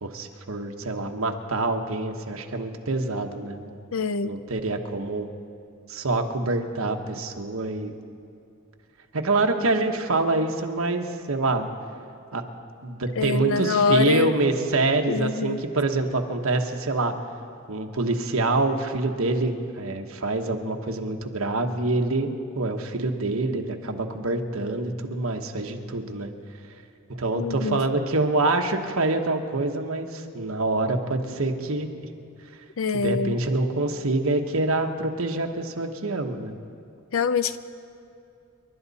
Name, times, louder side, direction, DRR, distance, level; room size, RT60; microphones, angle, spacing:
voice 1, 0.0-3.7 4.2-5.3 5.9-8.0 9.1-11.7 12.3-12.4 12.8-17.1 17.7-26.3 27.2-31.9 32.9-36.6, right 2 dB, 80° right, 4 dB, 1.2 m, -26 dB
voice 2, 3.9-4.4 13.2-14.3 15.1-15.6 27.3-27.8 32.8-33.4 37.1-37.6, left 5 dB, 70° left, 14 dB, 0.6 m, -24 dB
28.5 x 12.0 x 4.2 m, 2.5 s
head